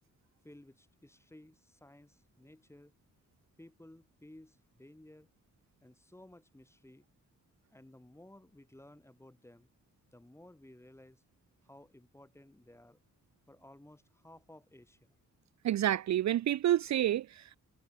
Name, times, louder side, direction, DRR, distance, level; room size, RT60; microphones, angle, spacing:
voice 1, 0.4-2.9 3.6-5.3 5.8-7.1 7.7-9.7 10.1-11.2 11.6-13.0 13.5-15.2, left 1 dB, 10° left, 7.2 m, -56 dB
voice 2, 15.6-17.6, right 12 dB, 60° right, 0.5 m, -29 dB
wide cardioid pair, 125°, 31 cm